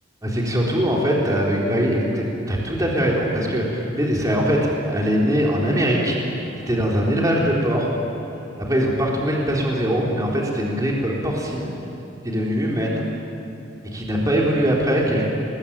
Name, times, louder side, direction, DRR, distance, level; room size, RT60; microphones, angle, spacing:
voice 1, 0.2-6.4 6.7-7.9 8.7-11.7 12.2-13.0 13.9-15.3, equal, 20° right, -3 dB, 4.0 m, -21 dB
Bowed string instrument, 5.1-10.4, equal, 80° left, 6.0 m, -45 dB
29.5 x 21.0 x 8.9 m, 3.0 s
head